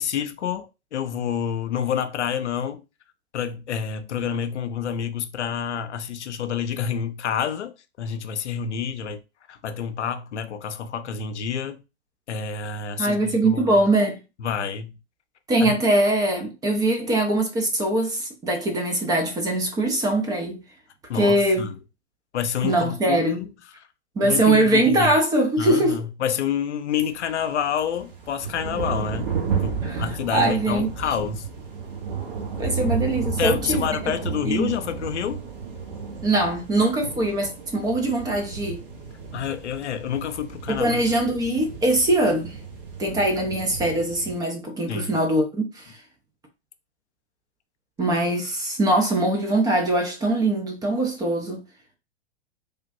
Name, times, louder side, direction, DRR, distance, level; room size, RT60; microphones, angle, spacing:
voice 1, 0.0-2.8 3.3-9.2 9.5-11.8 12.3-13.7 14.4-15.0 15.6-15.7 21.1-21.7 22.3-23.5 24.2-25.1 25.6-29.3 29.6-31.5 33.4-35.5 39.3-41.0 44.9-45.1, left 8 dB, 85° left, 0.5 m, -28 dB
voice 2, 13.0-14.2 15.5-20.6 21.1-21.7 22.6-23.4 24.2-26.0 29.8-30.0 30.3-30.9 32.6-33.9 34.4-34.7 36.2-38.8 40.7-42.6 43.0-46.0 48.0-51.6, right 1 dB, 10° right, 0.4 m, -22 dB
sound 1, 27.0-44.4, right 6 dB, 55° right, 1.1 m, -32 dB
3.3 x 2.2 x 2.6 m
hypercardioid pair, 115°, 33 cm